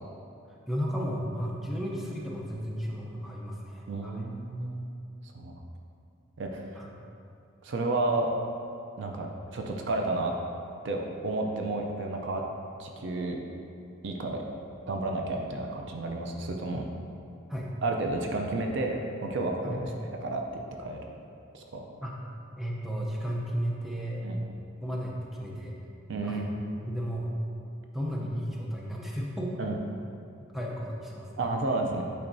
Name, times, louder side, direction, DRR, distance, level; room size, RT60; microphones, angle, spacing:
voice 1, 0.7-4.2 6.7-6.9 17.5-17.7 19.6-19.8 22.0-22.2 22.6-24.2 24.8-25.7 26.2-26.5 26.8-27.3 27.9-29.6 30.5-31.3, equal, ahead, -3 dB, 0.6 m, -34 dB
voice 2, 3.9-4.9 5.3-5.6 6.4-6.8 7.6-8.3 9.0-10.3 10.8-12.4 12.8-13.4 14.0-14.4 14.9-16.9 17.8-21.0 21.5-21.9 24.2-24.4 26.1-26.8 29.6-29.8 31.4-32.0, right 2 dB, 65° right, 2 dB, 0.5 m, -31 dB
8.6 x 4.4 x 2.7 m, 2.6 s
head